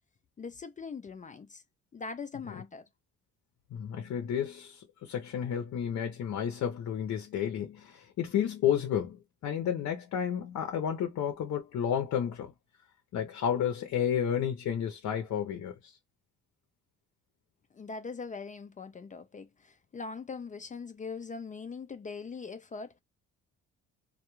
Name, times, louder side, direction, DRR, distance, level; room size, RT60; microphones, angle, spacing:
voice 1, 0.4-1.6 1.9-2.9 17.7-23.0, left 4 dB, 25° left, 0.4 m, -41 dB
voice 2, 3.7-12.5 13.1-16.0, left 9 dB, 65° left, 0.6 m, -31 dB
2.2 x 2.2 x 2.9 m
cardioid pair, 90°, 30 cm